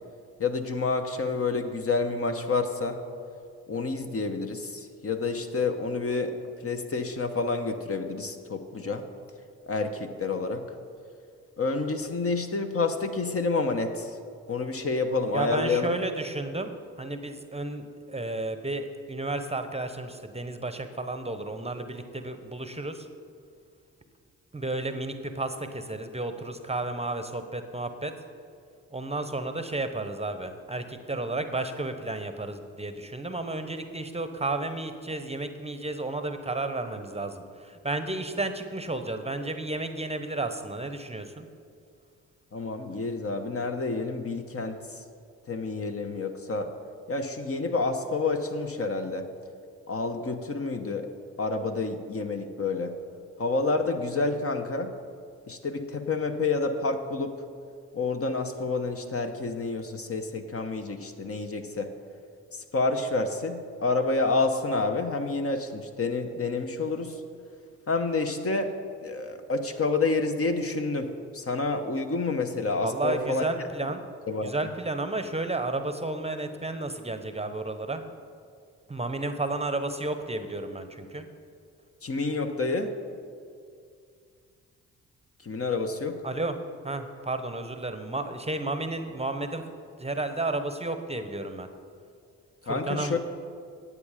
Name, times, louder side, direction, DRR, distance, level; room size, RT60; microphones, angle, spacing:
voice 1, 0.4-3.0 3.7-6.4 6.6-9.0 9.7-10.6 11.6-14.2 14.5-15.9 42.5-44.8 45.5-46.7 47.1-49.3 49.9-51.1 51.4-52.9 53.4-54.9 55.5-57.3 57.9-61.9 62.5-67.2 67.9-68.7 69.0-73.4 73.8-73.9 74.3-74.5 82.0-82.9 85.4-86.2 92.7-93.2, left 3 dB, 40° left, 6 dB, 1.0 m, -29 dB
voice 2, 15.3-16.7 17.0-23.1 24.5-28.1 28.9-41.4 72.8-74.0 74.4-78.0 78.9-81.2 86.2-86.6 86.8-89.6 90.0-91.7 92.7-93.2, right 2 dB, 20° right, 8 dB, 0.9 m, -32 dB
9.8 x 8.4 x 5.0 m, 2.2 s
supercardioid pair, 45°, 35 cm